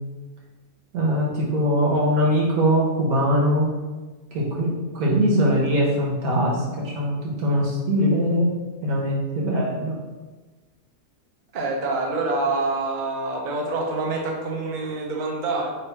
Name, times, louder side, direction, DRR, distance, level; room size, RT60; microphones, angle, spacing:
voice 1, 0.9-3.7 4.3-8.5 8.8-9.9, equal, 90° right, -2 dB, 1.4 m, -22 dB
voice 2, 11.5-15.7, right 3 dB, 50° right, 0 dB, 0.6 m, -26 dB
3.3 x 2.5 x 4.3 m, 1.3 s
omnidirectional pair, 1.5 m